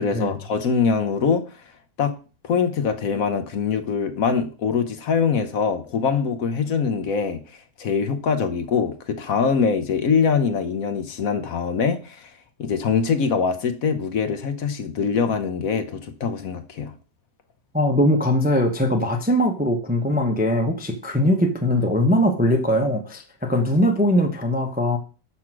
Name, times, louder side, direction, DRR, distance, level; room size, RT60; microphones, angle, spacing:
voice 1, 0.0-1.4 2.0-2.1 2.4-12.3 12.6-16.9, left 6 dB, 60° left, 9 dB, 1.2 m, -23 dB
voice 2, 17.7-25.0, equal, 10° right, 3 dB, 0.6 m, -21 dB
6.2 x 5.7 x 6.0 m, 0.36 s
omnidirectional pair, 1.8 m